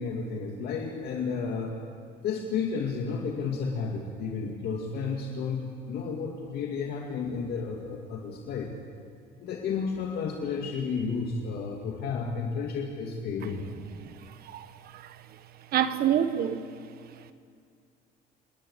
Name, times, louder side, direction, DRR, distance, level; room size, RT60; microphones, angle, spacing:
voice 1, 0.0-1.7 2.2-8.8 9.4-13.7, left 5 dB, 70° left, 1 dB, 2.2 m, -32 dB
voice 2, 15.7-16.6, right 10 dB, 65° right, 11 dB, 1.3 m, -26 dB
27.0 x 11.0 x 9.5 m, 2.2 s
cardioid pair, 110°, 17 cm